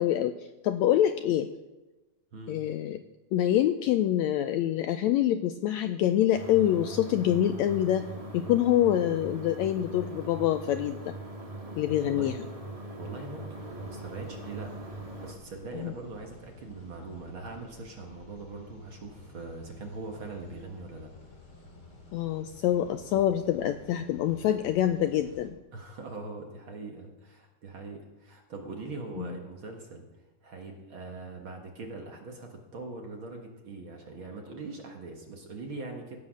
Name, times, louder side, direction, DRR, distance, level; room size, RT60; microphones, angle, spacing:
voice 1, 0.0-1.5 2.5-3.0 3.3-11.1 11.8-12.4 15.8-15.9 22.1-25.5 29.2-29.3, left 11 dB, 80° left, 9 dB, 1.6 m, -26 dB
sound 1, 6.3-15.3, right 1 dB, 15° right, 1.1 m, -41 dB
voice 2, 11.9-12.4 13.0-14.8 15.2-21.1 25.7-30.1 30.4-36.2, right 3 dB, 50° right, 2 dB, 1.8 m, -42 dB
sound 2, 13.6-25.5, left 2 dB, 35° left, 3.0 m, -51 dB
16.0 x 8.5 x 6.3 m, 1.1 s
omnidirectional pair, 3.6 m